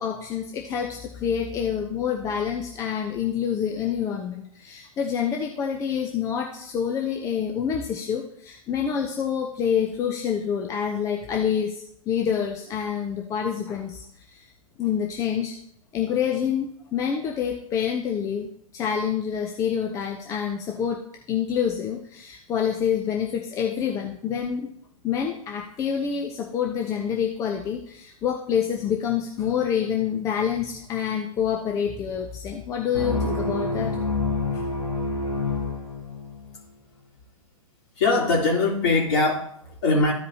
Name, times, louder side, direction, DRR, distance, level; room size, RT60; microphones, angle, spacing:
voice 1, 0.0-14.4 14.8-15.5 15.9-18.5 18.7-21.0 21.3-24.7 25.0-33.9 34.5-34.7, left 8 dB, 15° left, 2 dB, 0.7 m, -27 dB
sound 1, 32.9-36.5, left 3 dB, 75° left, 1.5 m, -27 dB
voice 2, 38.0-40.1, left 3 dB, 45° left, -3 dB, 3.3 m, -22 dB
14.0 x 5.1 x 2.8 m, 0.67 s
figure-of-eight pair, 110°, 18 cm